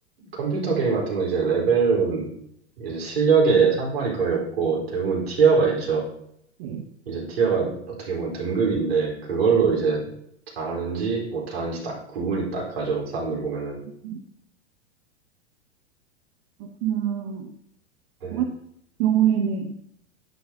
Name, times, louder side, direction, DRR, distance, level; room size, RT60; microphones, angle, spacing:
voice 1, 0.2-2.3 2.8-6.1 7.1-10.1 10.6-13.8 18.2-18.4, right 5 dB, 60° right, -2 dB, 4.2 m, -23 dB
voice 2, 6.6-6.9 14.0-14.2 16.6-17.6 18.3-18.5 19.0-19.7, right 9 dB, 40° right, 4 dB, 1.0 m, -25 dB
11.5 x 9.3 x 2.8 m, 0.72 s
figure-of-eight pair, 95°, 34 cm